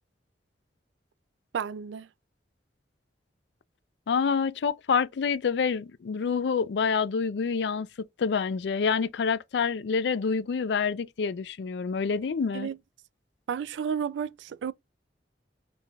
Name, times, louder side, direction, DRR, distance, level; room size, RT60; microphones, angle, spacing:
voice 1, 1.5-2.1 12.5-12.8 13.5-14.7, right 7 dB, 75° right, 0.3 m, -32 dB
voice 2, 4.1-12.7, left 5 dB, 65° left, 0.4 m, -27 dB
5.1 x 3.2 x 2.3 m
head